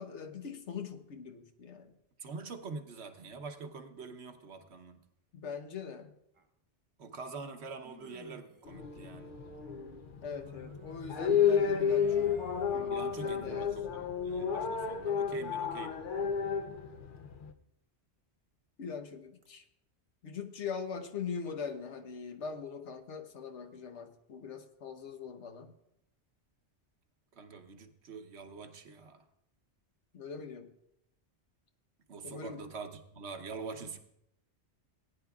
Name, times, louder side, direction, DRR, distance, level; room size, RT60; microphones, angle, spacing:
voice 1, 0.0-1.9 5.3-6.1 10.2-12.3 12.7-13.7 18.8-19.6 20.2-25.7 30.1-30.7 32.2-32.6, left 6 dB, 80° left, 6 dB, 1.3 m, -42 dB
voice 2, 2.2-5.0 7.0-9.3 12.9-16.0 27.4-29.2 32.1-34.0, right 4 dB, 70° right, 7 dB, 1.2 m, -45 dB
sound 1, 6.4-6.5 7.8-8.7 10.2-13.0 19.4-19.5, right 2 dB, 30° right, 0.9 m, -54 dB
sound 2, 8.7-17.5, left 7 dB, 55° left, 0.7 m, -32 dB
18.5 x 10.0 x 2.4 m, 0.80 s
omnidirectional pair, 1.2 m